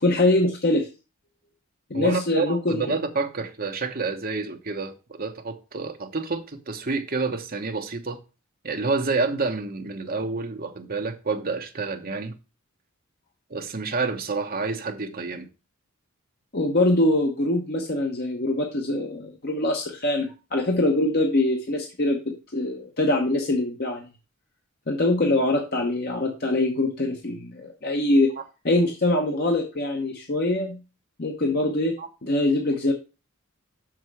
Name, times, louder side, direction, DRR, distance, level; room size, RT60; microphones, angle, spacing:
voice 1, 0.0-0.9 1.9-2.8 16.5-24.1 24.9-28.3 28.6-30.8 31.2-31.9 32.2-32.9, left 1 dB, 45° left, 1.0 m, -23 dB
voice 2, 1.9-8.2 8.6-12.3 13.5-15.5 28.4-28.5 32.0-32.1, right 4 dB, 40° right, 1.0 m, -29 dB
6.6 x 6.2 x 4.7 m
head